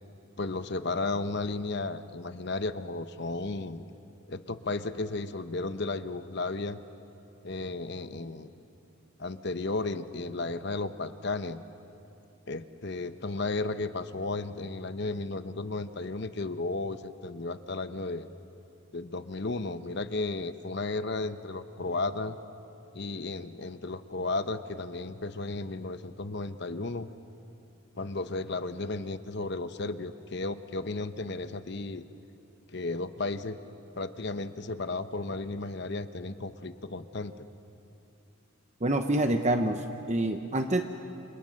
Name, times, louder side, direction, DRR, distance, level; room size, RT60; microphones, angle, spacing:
voice 1, 0.4-3.8 4.3-6.8 7.4-8.5 9.2-11.6 12.5-18.3 18.9-22.4 22.9-27.1 28.0-32.0 32.7-33.6 34.0-37.5, left 3 dB, 55° left, 11 dB, 0.9 m, -34 dB
voice 2, 38.8-40.8, right 1 dB, 30° right, 6 dB, 0.9 m, -27 dB
29.0 x 27.0 x 6.5 m, 2.8 s
head